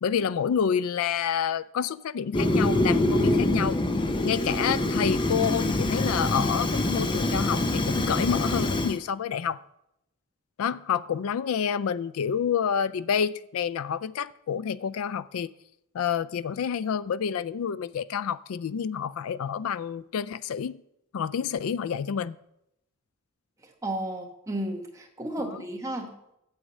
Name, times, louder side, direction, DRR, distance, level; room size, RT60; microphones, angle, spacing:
voice 1, 0.0-3.8 4.2-9.6 10.6-15.5 15.9-20.8 21.1-22.4 25.4-25.6, left 7 dB, 80° left, 0.4 m, -28 dB
Fire, 2.3-9.0, left 1 dB, 20° left, 0.5 m, -25 dB
voice 2, 23.8-26.1, right 1 dB, 15° right, 1.1 m, -33 dB
8.0 x 7.4 x 5.3 m
head